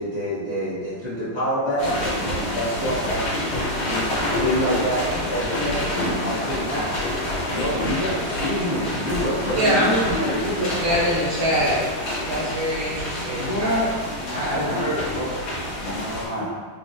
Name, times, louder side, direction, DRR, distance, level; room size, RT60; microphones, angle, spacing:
voice 1, 0.0-6.9 7.5-10.5 13.3-13.9, equal, 60° left, -14 dB, 0.4 m, -27 dB
sound 1, 1.8-16.3, left 1 dB, 85° left, 1.8 m, -27 dB
voice 2, 9.5-10.0 10.4-11.9 12.2-13.7 14.4-14.5, equal, 75° right, -6 dB, 0.8 m, -23 dB
voice 3, 14.1-15.5 15.8-16.5, equal, 45° left, -13 dB, 1.0 m, -30 dB
3.9 x 2.1 x 2.6 m, 1.5 s
omnidirectional pair, 2.3 m